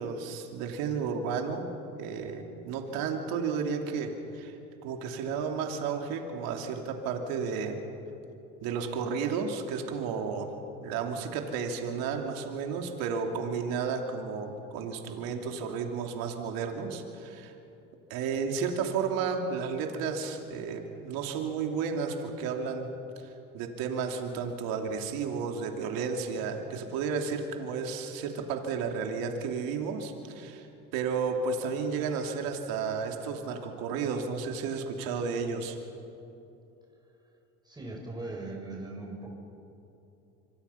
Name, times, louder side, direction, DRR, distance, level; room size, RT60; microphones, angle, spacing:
voice 1, 0.0-1.7 2.0-4.6 4.8-7.8 8.6-10.5 10.8-17.5 18.1-22.9 23.2-30.7 30.9-35.8, right 5 dB, 70° right, 4 dB, 2.9 m, -32 dB
voice 2, 37.6-39.3, right 2 dB, 10° right, -1 dB, 6.3 m, -39 dB
26.0 x 25.5 x 5.8 m, 2.9 s
supercardioid pair, 85°, 36 cm